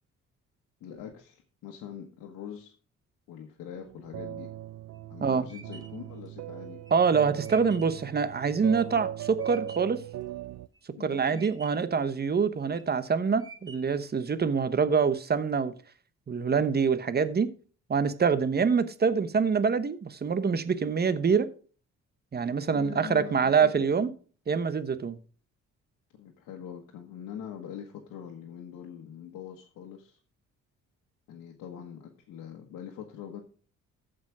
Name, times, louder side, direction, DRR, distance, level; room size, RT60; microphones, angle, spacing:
voice 1, 0.8-2.7 3.3-4.5 5.1-6.8 11.0-11.4 22.7-24.1 26.1-30.2 31.3-33.4, left 9 dB, 90° left, 1.5 m, -43 dB
sound 1, 3.7-10.7, right 12 dB, 60° right, 0.5 m, -39 dB
sound 2, 4.6-10.1 10.5-11.0 11.3-12.0 12.5-13.0 13.4-14.1, right 4 dB, 10° right, 1.8 m, -51 dB
voice 2, 6.9-10.0 11.0-15.7 16.3-17.5 17.9-21.5 22.3-24.1 24.5-25.2, right 5 dB, 35° right, 1.0 m, -25 dB
14.5 x 5.2 x 4.8 m
cardioid pair, 90°, 30 cm